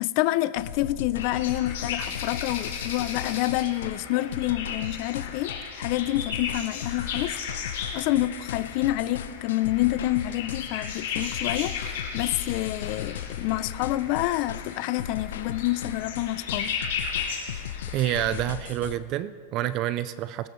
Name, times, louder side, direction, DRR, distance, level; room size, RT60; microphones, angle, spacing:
voice 1, 0.0-7.4 7.7-16.8 17.5-17.6, left 16 dB, 40° left, 16 dB, 0.4 m, -28 dB
sound 1, 0.6-19.0, left 9 dB, 85° left, 0.7 m, -37 dB
sound 2, 1.2-18.4, left 6 dB, 70° left, 3.4 m, -36 dB
voice 2, 17.9-20.5, right 13 dB, 30° right, 15 dB, 0.3 m, -28 dB
22.5 x 13.0 x 3.1 m, 2.1 s
supercardioid pair, 170°, 0 cm